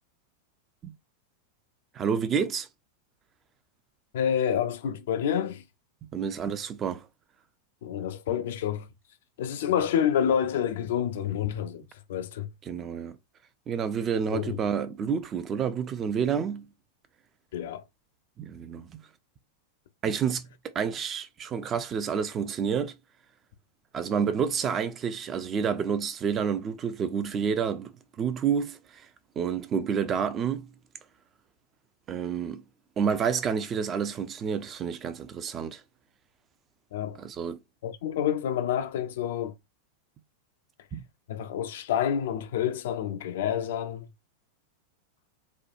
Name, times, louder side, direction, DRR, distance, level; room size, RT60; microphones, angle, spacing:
voice 1, 1.9-2.7 6.1-7.1 12.7-13.2 13.7-16.7 18.4-19.0 20.0-23.0 23.9-27.9 28.2-29.1 29.4-30.7 32.1-32.6 33.0-35.8 37.2-37.6 40.9-41.1, right 7 dB, 25° right, 0.5 m, -29 dB
voice 2, 4.1-5.6 7.8-8.9 9.4-11.8 12.1-12.5 14.3-14.6 17.5-17.8 36.9-37.2 37.8-39.5 41.3-44.1, left 9 dB, 55° left, 0.5 m, -28 dB
4.4 x 2.3 x 2.6 m
figure-of-eight pair, 90°, 0 cm